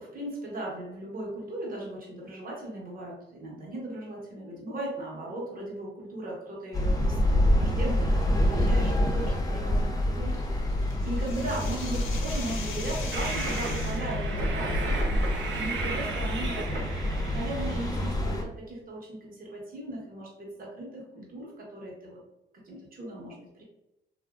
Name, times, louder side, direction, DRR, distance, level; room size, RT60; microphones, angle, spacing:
voice 1, 0.0-15.0 15.5-16.6 17.2-22.2 22.6-23.6, right 1 dB, 45° right, -3 dB, 1.2 m, -38 dB
sound 1, 6.7-18.4, left 1 dB, 20° left, 0.7 m, -27 dB
sound 2, 10.3-14.1, left 5 dB, 85° left, 0.7 m, -41 dB
Train, 13.1-18.1, right 3 dB, 70° right, 0.8 m, -35 dB
3.1 x 2.6 x 2.4 m, 0.90 s
cardioid pair, 90°, 20 cm